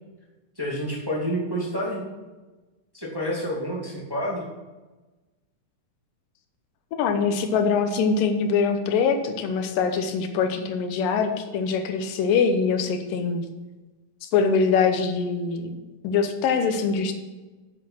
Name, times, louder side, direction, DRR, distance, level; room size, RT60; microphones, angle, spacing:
voice 1, 0.6-2.0 2.9-4.4, equal, 10° right, -3 dB, 1.0 m, -28 dB
voice 2, 6.9-13.5 14.2-15.7 16.0-17.1, left 5 dB, 90° left, 6 dB, 2.6 m, -23 dB
8.1 x 7.5 x 6.1 m, 1.2 s
omnidirectional pair, 3.8 m